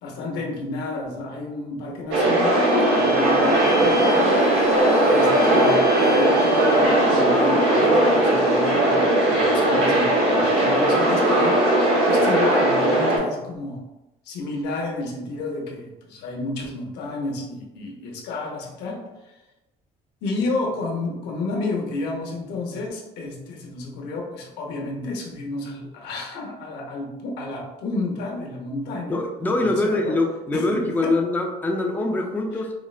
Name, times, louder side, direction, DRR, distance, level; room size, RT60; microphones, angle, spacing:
voice 1, 0.0-4.7 5.1-11.6 12.1-13.8 14.2-19.3 20.2-29.2 29.5-30.2 30.5-31.1, left 2 dB, 85° left, 0 dB, 0.7 m, -31 dB
sound 1, 2.1-13.2, right 1 dB, 90° right, 1.1 m, -18 dB
Bowed string instrument, 2.2-6.9, equal, 65° right, 0.8 m, -36 dB
voice 2, 29.1-32.7, left 2 dB, 10° left, 1 dB, 0.4 m, -23 dB
4.3 x 2.0 x 2.4 m, 1.0 s
cardioid pair, 110°, 17 cm